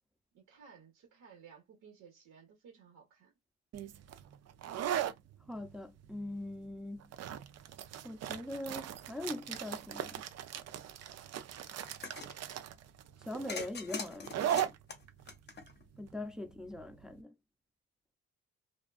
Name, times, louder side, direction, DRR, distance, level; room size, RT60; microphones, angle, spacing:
voice 1, 0.3-3.3, right 6 dB, 90° right, 1.3 m, -57 dB
sound 1, 3.7-17.1, right 10 dB, 60° right, 0.5 m, -39 dB
voice 2, 5.5-7.1 8.0-10.2 13.2-14.7 16.0-17.3, left 1 dB, ahead, 0.6 m, -42 dB
sound 2, 11.8-12.4 13.5-16.0, left 5 dB, 35° left, 0.8 m, -43 dB
2.5 x 2.3 x 2.4 m
cardioid pair, 90°, 30 cm